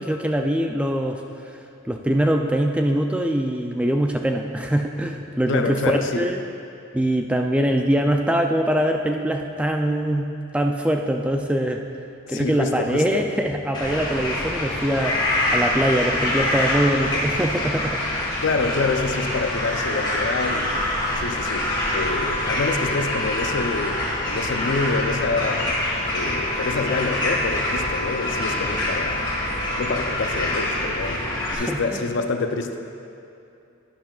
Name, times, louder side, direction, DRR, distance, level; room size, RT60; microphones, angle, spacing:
voice 1, 0.0-1.6 1.9-6.4 6.9-10.3 10.5-11.8 12.3-15.2 15.5-18.0 31.5-32.0, right 1 dB, 5° right, 3 dB, 0.3 m, -23 dB
voice 2, 5.5-6.3 12.3-13.3 18.4-20.8 21.2-25.8 26.1-29.4 29.8-32.8, left 3 dB, 55° left, 6 dB, 0.5 m, -27 dB
sound 1, 13.7-31.5, left 1 dB, 20° left, 1.7 m, -25 dB
Wind instrument woodwind instrument, 20.2-30.6, left 2 dB, 60° right, 1.8 m, -36 dB
11.5 x 10.5 x 2.4 m, 2.7 s
head